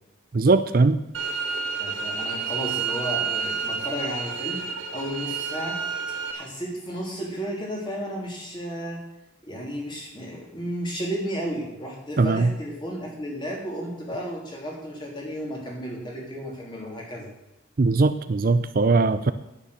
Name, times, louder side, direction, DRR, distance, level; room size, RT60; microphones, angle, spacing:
voice 1, 0.3-1.0 12.2-12.5 17.8-19.3, right 3 dB, 45° right, 12 dB, 0.5 m, -20 dB
sound 1, 1.1-6.3, right 5 dB, 85° right, 1.4 m, -29 dB
voice 2, 1.8-5.8 6.3-9.0 9.4-17.3, equal, 25° left, -2 dB, 3.2 m, -33 dB
10.0 x 9.2 x 6.5 m, 0.91 s
head